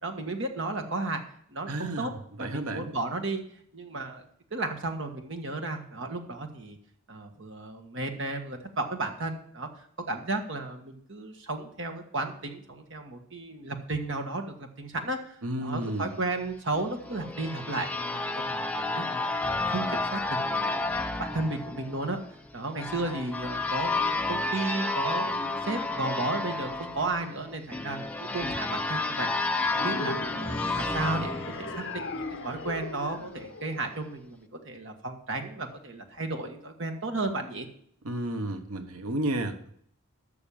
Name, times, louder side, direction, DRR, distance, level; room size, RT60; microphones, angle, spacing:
voice 1, 0.0-1.2 1.5-2.1 2.4-3.4 3.7-6.8 7.1-9.7 10.1-19.4 19.7-20.9 21.2-22.2 22.5-29.5 29.7-30.2 30.5-37.7, right 2 dB, 55° right, 5 dB, 1.6 m, -34 dB
voice 2, 1.7-2.1 2.4-2.9 15.4-16.1 38.0-39.7, right 1 dB, 80° right, 7 dB, 1.2 m, -32 dB
sound 1, 16.7-32.4, left 3 dB, 5° left, 0.6 m, -31 dB
sound 2, 29.7-34.2, left 2 dB, 55° left, 1.3 m, -38 dB
12.5 x 6.6 x 7.0 m, 0.64 s
head